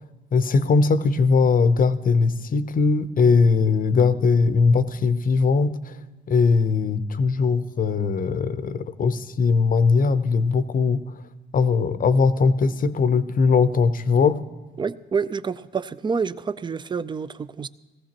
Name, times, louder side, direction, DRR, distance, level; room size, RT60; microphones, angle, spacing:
voice 1, 0.3-6.0 6.3-11.2 11.5-14.4, left 4 dB, 45° left, 0.7 m, -20 dB
voice 2, 14.8-17.7, right 5 dB, 25° right, 0.4 m, -28 dB
18.5 x 15.0 x 2.9 m
cardioid pair, 90°, 20 cm